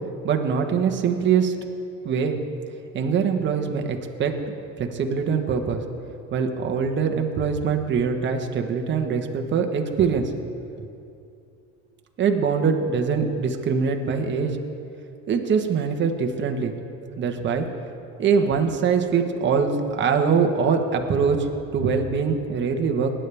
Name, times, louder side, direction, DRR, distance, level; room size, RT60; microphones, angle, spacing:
voice 1, 0.2-1.5 2.0-2.4 2.9-5.8 6.3-10.2 10.8-10.9 12.2-14.5 15.3-16.7 17.2-17.7 18.2-21.4 21.7-23.1, right 6 dB, 35° right, 4 dB, 1.2 m, -23 dB
19.5 x 10.0 x 3.4 m, 2.6 s
cardioid pair, 125°, 33 cm